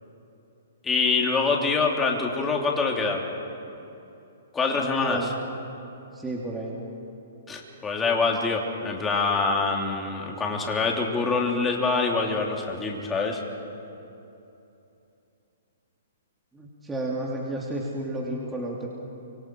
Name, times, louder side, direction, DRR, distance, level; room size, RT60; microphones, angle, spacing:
voice 1, 0.8-3.2 4.5-5.3 7.5-13.4, left 4 dB, 15° left, 0 dB, 3.2 m, -25 dB
voice 2, 4.8-5.3 6.1-6.8 16.5-18.9, right 1 dB, 10° right, -3 dB, 2.9 m, -31 dB
29.0 x 25.5 x 4.7 m, 2.8 s
hypercardioid pair, 140°, 0 cm